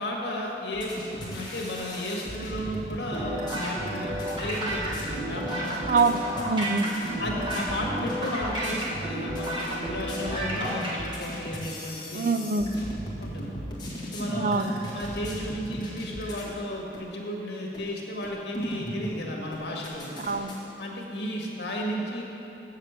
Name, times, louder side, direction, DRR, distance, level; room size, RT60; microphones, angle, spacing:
voice 1, 0.0-6.2 7.2-12.3 13.2-13.5 14.0-20.1 20.8-22.3, left 1 dB, 75° left, -2 dB, 1.7 m, -34 dB
sound 1, 0.7-16.6 16.9-17.0 17.7-17.8 18.2-19.2 19.5-20.6, equal, 25° left, 1.6 m, -37 dB
sound 2, 3.1-11.0, right 1 dB, 25° right, 1.7 m, -32 dB
voice 2, 5.9-6.9 12.1-12.7 14.3-14.7 20.3-20.6, right 3 dB, 45° right, 8 dB, 0.4 m, -25 dB
7.8 x 6.6 x 7.9 m, 3.0 s
head